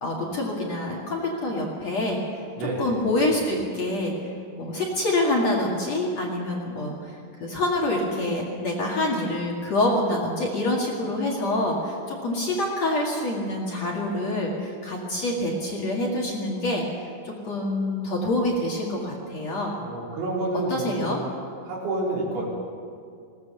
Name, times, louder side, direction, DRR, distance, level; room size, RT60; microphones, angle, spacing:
voice 1, 0.0-2.2 2.8-4.2 4.5-16.9 17.2-19.8 20.5-21.2, left 1 dB, 45° left, -2 dB, 2.6 m, -26 dB
voice 2, 2.6-2.9 19.8-21.2 21.7-22.4, right 2 dB, 80° right, -4 dB, 6.6 m, -29 dB
21.0 x 18.0 x 6.9 m, 2.3 s
omnidirectional pair, 5.3 m